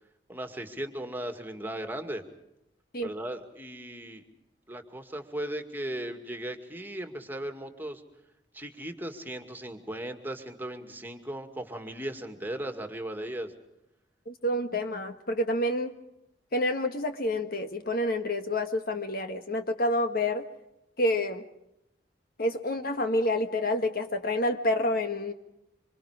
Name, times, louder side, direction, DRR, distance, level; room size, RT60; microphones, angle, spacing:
voice 1, 0.3-2.2 3.0-4.2 4.7-8.0 8.5-13.5, right 1 dB, 10° right, 6 dB, 2.2 m, -37 dB
voice 2, 14.3-15.9 16.5-20.4 21.0-21.4 22.4-25.3, left 1 dB, 55° left, 7 dB, 1.6 m, -28 dB
26.5 x 26.0 x 5.0 m, 0.82 s
head